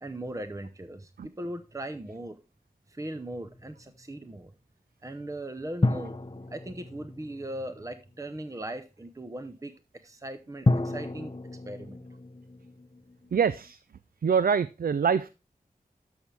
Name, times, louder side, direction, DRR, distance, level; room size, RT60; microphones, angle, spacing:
voice 1, 0.0-2.4 2.9-4.5 5.0-6.2 6.5-11.3 11.7-12.0, right 1 dB, 20° right, 0.8 m, -39 dB
sound 1, 3.1-4.1 5.8-8.2 10.7-13.7, left 2 dB, 30° left, 0.7 m, -32 dB
voice 2, 13.3-13.8 14.2-15.3, right 6 dB, 70° right, 0.4 m, -24 dB
12.5 x 6.2 x 3.3 m
wide cardioid pair, 75°, 15 cm